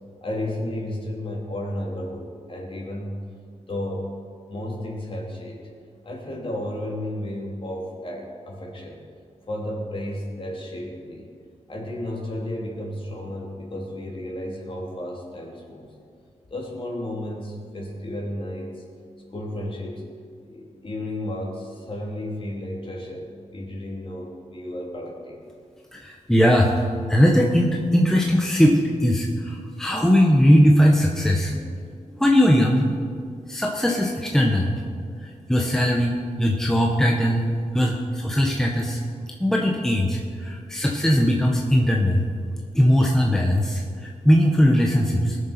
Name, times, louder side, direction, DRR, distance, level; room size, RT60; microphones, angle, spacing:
voice 1, 0.2-3.2 3.7-4.1 4.5-5.7 6.0-9.0 9.5-11.3 11.7-15.9 16.5-18.8 19.3-20.0 20.4-25.4, left 1 dB, 45° left, -2 dB, 3.1 m, -33 dB
voice 2, 25.9-26.8 27.1-31.8 32.2-32.9 33.5-34.7 35.2-37.5 37.7-39.0 39.4-42.2 42.7-45.4, equal, 5° left, 0 dB, 1.2 m, -19 dB
19.5 x 6.9 x 5.9 m, 2.2 s
wide cardioid pair, 90°, 13 cm